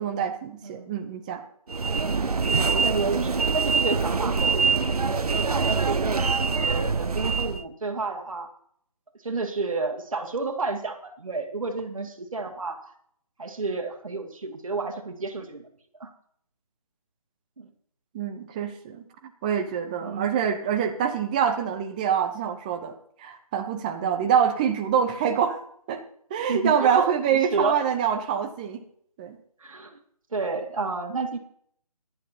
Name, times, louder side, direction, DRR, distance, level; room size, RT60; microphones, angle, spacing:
voice 1, 0.0-1.4 18.1-22.9 23.2-25.6 25.9-26.0 26.3-28.8 29.2-29.4, right 8 dB, 15° right, 6 dB, 0.7 m, -25 dB
sound 1, 1.7-7.6, right 5 dB, 75° right, 0.9 m, -24 dB
voice 2, 2.5-6.1 6.6-8.5 9.2-12.9 13.4-15.7 16.0-16.1 17.6-17.7 20.0-20.3 24.0-24.2 26.5-27.1 27.5-27.8 29.6-30.0 30.3-31.4, right 3 dB, 60° right, 4 dB, 2.2 m, -31 dB
17.5 x 11.0 x 2.9 m, 0.64 s
figure-of-eight pair, 155°, 20 cm